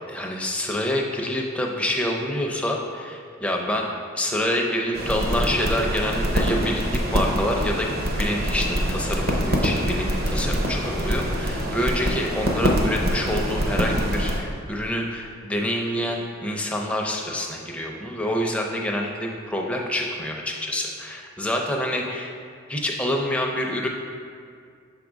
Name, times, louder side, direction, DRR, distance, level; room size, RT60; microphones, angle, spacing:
voice 1, 0.1-3.9 4.1-7.9 8.2-22.3 22.7-23.9, left 1 dB, 5° left, 0 dB, 0.4 m, -27 dB
sound 1, 4.9-14.4, equal, 45° right, 0.7 m, -25 dB
6.6 x 3.5 x 5.0 m, 2.2 s
head